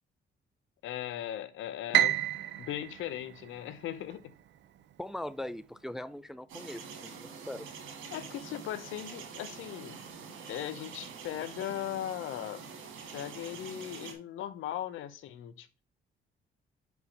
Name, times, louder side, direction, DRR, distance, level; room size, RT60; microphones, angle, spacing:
voice 1, 0.8-2.2 2.6-4.3 8.1-10.0 10.5-12.7 13.1-15.8, left 12 dB, 80° left, 0.7 m, -38 dB
Piano, 1.9-4.2, right 12 dB, 65° right, 0.5 m, -30 dB
voice 2, 5.0-7.7, left 1 dB, ahead, 0.3 m, -40 dB
sound 1, 6.5-14.1, right 5 dB, 85° right, 1.7 m, -46 dB
5.4 x 4.7 x 3.8 m
cardioid pair, 90°, 20 cm